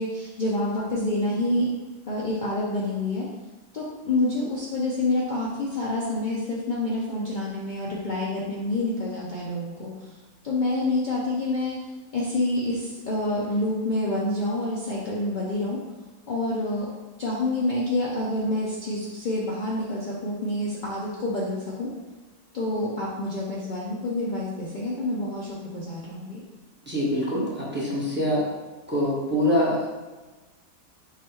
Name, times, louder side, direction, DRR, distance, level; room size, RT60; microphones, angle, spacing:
voice 1, 0.0-1.7 2.1-3.3 3.7-9.9 10.4-11.8 12.1-15.8 16.3-16.9 17.2-21.9 22.5-26.4, left 2 dB, 70° left, -6 dB, 0.4 m, -27 dB
voice 2, 26.9-28.4 28.9-29.9, left 1 dB, 10° right, -6 dB, 0.8 m, -24 dB
4.9 x 2.4 x 4.4 m, 1.2 s
omnidirectional pair, 1.7 m